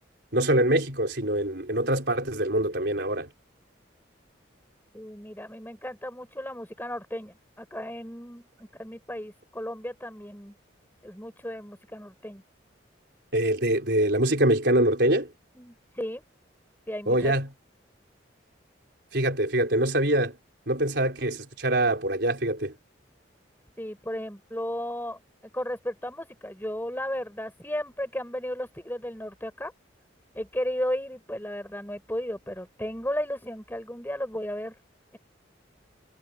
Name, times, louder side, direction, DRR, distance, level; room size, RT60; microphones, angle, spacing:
voice 1, 0.3-3.3 13.3-15.3 17.1-17.5 19.1-20.3 20.7-22.7, right 1 dB, 60° right, 4.9 m, -24 dB
voice 2, 4.9-10.5 11.0-12.4 15.5-16.2 16.9-17.3 23.8-25.2 25.5-29.7 30.3-34.8 35.1-35.2, equal, 10° left, 4.9 m, -34 dB
head